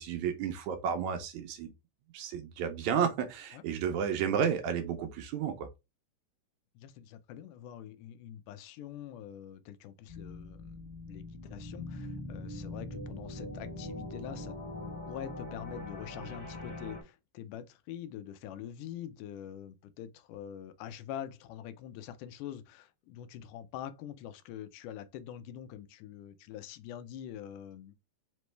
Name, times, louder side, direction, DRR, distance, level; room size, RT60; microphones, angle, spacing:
voice 1, 0.0-1.7 2.1-5.7, right 7 dB, 75° right, 1.9 m, -32 dB
voice 2, 6.8-14.6 15.1-28.0, left 10 dB, 85° left, 2.1 m, -45 dB
sound 1, 10.1-17.0, left 2 dB, 60° left, 0.4 m, -42 dB
5.1 x 3.1 x 3.2 m
omnidirectional pair, 3.6 m